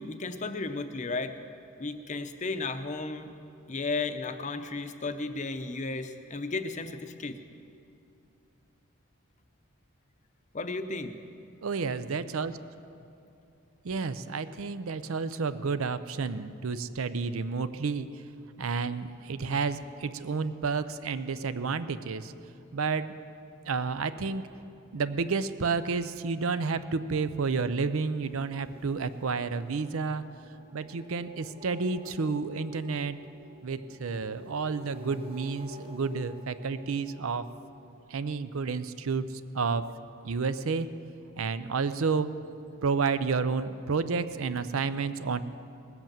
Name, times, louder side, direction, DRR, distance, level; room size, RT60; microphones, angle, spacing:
voice 1, 0.0-1.3 1.8-3.4 3.7-7.4 10.5-11.2, left 3 dB, 35° left, 9 dB, 0.6 m, -34 dB
voice 2, 11.6-12.7 13.8-18.2 18.6-22.3 22.7-23.1 23.7-24.6 24.9-30.2 30.7-33.2 33.6-37.5 38.1-39.8 40.2-40.9 41.4-42.3 42.8-45.4, right 4 dB, 75° right, 13 dB, 0.5 m, -30 dB
sound 1, 27.9-37.7, left 1 dB, 25° right, 0.9 m, -50 dB
19.0 x 8.0 x 7.4 m, 2.6 s
head